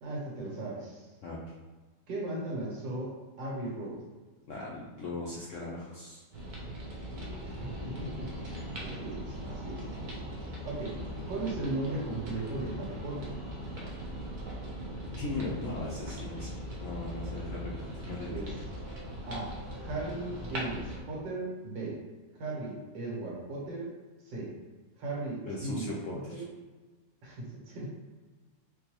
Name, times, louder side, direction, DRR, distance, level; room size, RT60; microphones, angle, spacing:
voice 1, 0.0-1.1 2.1-4.0 7.4-8.3 8.7-9.8 10.6-11.0 11.3-13.3 17.2-17.6 18.3-18.5 19.3-22.0 22.3-23.9 24.3-24.5 25.0-26.5 27.2-27.9, right 2 dB, 90° right, -4 dB, 1.8 m, -37 dB
voice 2, 1.2-1.5 4.5-6.2 15.1-18.3 25.4-26.4, left 2 dB, 70° left, -5 dB, 0.7 m, -39 dB
sound 1, 6.3-21.0, equal, 60° right, 0.5 m, -40 dB
4.8 x 2.2 x 3.0 m, 1.3 s
omnidirectional pair, 1.9 m